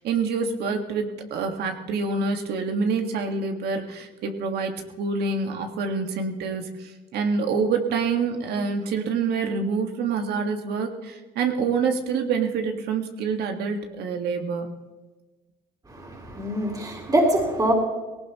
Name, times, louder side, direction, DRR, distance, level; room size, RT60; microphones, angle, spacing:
voice 1, 0.0-14.7, right 5 dB, 70° right, 4 dB, 1.8 m, -26 dB
voice 2, 16.3-17.7, right 1 dB, 20° right, -1 dB, 3.7 m, -23 dB
19.5 x 17.5 x 3.1 m, 1.2 s
cardioid pair, 110°, 17 cm